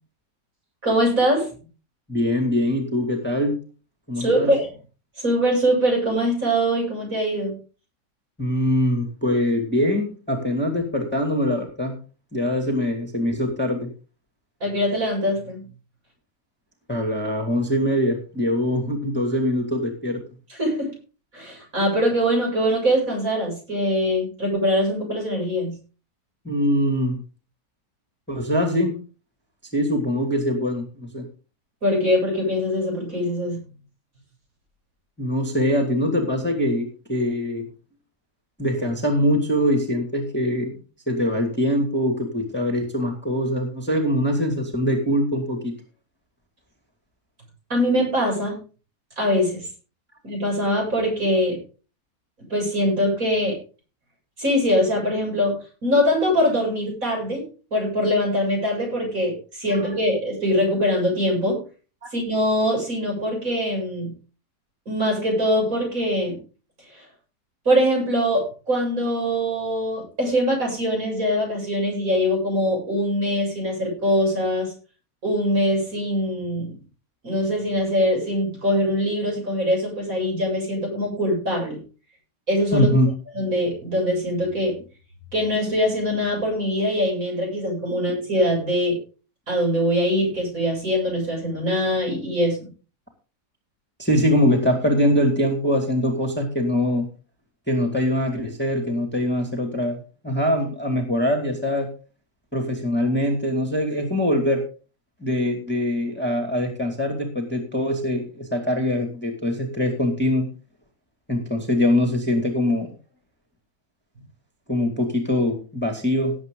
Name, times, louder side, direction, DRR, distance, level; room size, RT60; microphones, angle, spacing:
voice 1, 0.8-1.5 4.2-4.7 5.2-7.6 14.6-15.6 20.5-20.9 21.3-25.8 31.8-33.6 47.7-48.6 49.2-49.7 50.2-51.6 52.5-53.6 54.4-57.4 57.7-61.6 62.1-64.1 64.9-66.4 66.9-67.0 67.6-74.7 75.2-76.7 77.2-81.8 82.5-82.9 83.3-84.7 85.3-89.0 89.5-92.7, equal, 55° right, -1 dB, 8.3 m, -23 dB
voice 2, 2.1-3.6 4.1-4.5 8.4-11.9 12.3-13.9 16.9-20.2 26.4-27.2 28.3-29.0 29.7-31.3 35.2-37.7 38.6-40.8 41.1-45.7 59.7-59.8 62.0-62.1 82.7-83.1 94.0-97.1 97.7-101.9 102.5-104.6 105.2-110.5 111.3-112.9 114.7-116.3, equal, 5° left, 1 dB, 2.2 m, -23 dB
18.0 x 8.0 x 3.8 m, 0.35 s
omnidirectional pair, 1.8 m